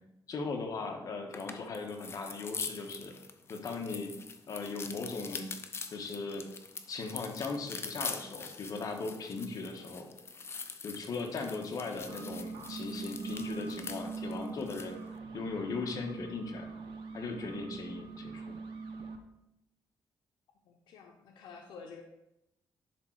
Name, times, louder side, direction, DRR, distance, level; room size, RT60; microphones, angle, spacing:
voice 1, 0.3-3.1 3.5-4.1 4.5-5.5 5.9-6.5 6.9-10.1 10.8-15.0 15.3-16.7 17.1-18.4, left 4 dB, 55° left, 2 dB, 1.4 m, -38 dB
sound 1, 1.3-14.9, left 5 dB, 35° left, 0.6 m, -44 dB
sound 2, 12.0-19.2, right 4 dB, 90° right, 0.8 m, -42 dB
voice 2, 20.6-22.0, left 5 dB, 85° left, 2 dB, 0.8 m, -50 dB
11.0 x 3.7 x 4.7 m, 0.85 s
cardioid pair, 120°, 8 cm